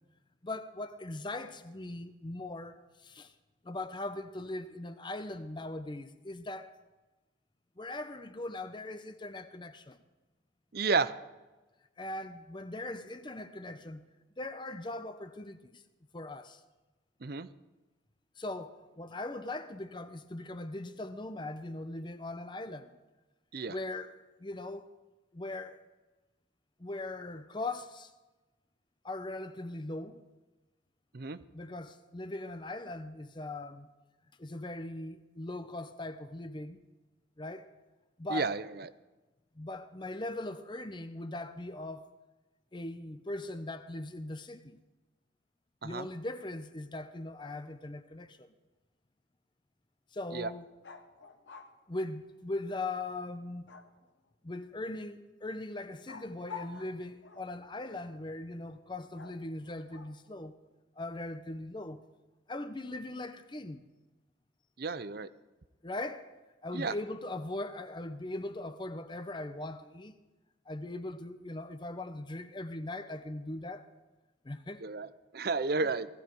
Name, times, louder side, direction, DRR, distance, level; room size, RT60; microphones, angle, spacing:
voice 1, 0.4-3.3 3.6-6.7 7.8-10.0 12.0-14.0 14.4-15.8 16.1-16.6 18.4-23.0 23.7-24.9 25.3-25.8 26.8-28.1 29.0-30.3 31.5-33.9 34.4-36.8 37.4-37.7 38.2-38.5 39.6-42.1 42.7-44.8 45.8-48.5 50.1-50.7 51.9-53.7 54.4-60.6 61.0-62.0 62.5-63.9 65.8-66.3 66.6-70.2 70.7-73.9 74.4-74.9 75.8-75.9, left 2 dB, 25° left, 0.7 m, -40 dB
voice 2, 10.7-11.1 17.2-17.5 23.5-23.7 31.1-31.4 38.3-38.6 45.8-46.1 50.3-50.5 64.8-65.3 66.7-66.9 74.8-75.1 75.3-76.1, right 4 dB, 55° right, 0.6 m, -31 dB
sound 1, 50.8-51.8 53.7-54.3 56.1-57.6 59.2-60.3, left 6 dB, 70° left, 1.2 m, -49 dB
18.0 x 15.0 x 4.6 m
head